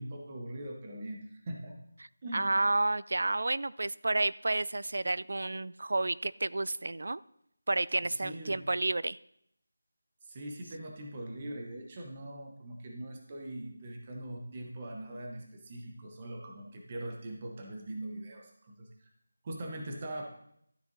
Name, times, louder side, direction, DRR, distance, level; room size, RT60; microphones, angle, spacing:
voice 1, 0.0-1.8 2.2-2.5 8.1-8.7 10.2-19.1 19.4-20.2, right 1 dB, 15° right, 1 dB, 0.9 m, -42 dB
voice 2, 2.3-7.2 7.7-9.2, right 2 dB, 50° right, 18 dB, 0.3 m, -30 dB
12.5 x 7.2 x 4.0 m, 0.72 s
figure-of-eight pair, 180°, 0 cm